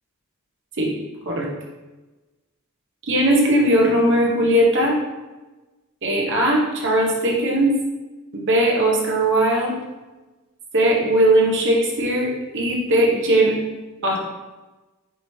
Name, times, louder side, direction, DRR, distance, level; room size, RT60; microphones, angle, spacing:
voice 1, 3.1-4.9 6.0-7.7 8.3-9.8 10.7-13.5 14.0-14.2, right 1 dB, 60° right, -1 dB, 0.8 m, -19 dB
4.8 x 3.1 x 2.7 m, 1.2 s
head